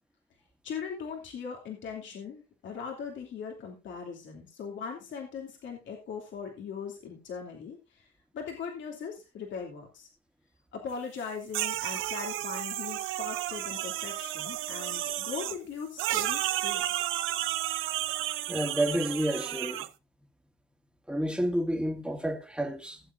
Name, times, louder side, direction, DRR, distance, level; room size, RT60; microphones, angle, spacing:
voice 1, 0.6-8.1 8.3-10.1 10.7-16.8, left 6 dB, 70° left, 2.9 m, -40 dB
sound 1, 11.5-15.6 16.0-19.9, right 13 dB, 85° right, 0.7 m, -32 dB
voice 2, 18.5-19.8 21.1-23.0, right 1 dB, 5° right, 2.2 m, -30 dB
17.5 x 7.8 x 2.7 m
cardioid pair, 90°, 20 cm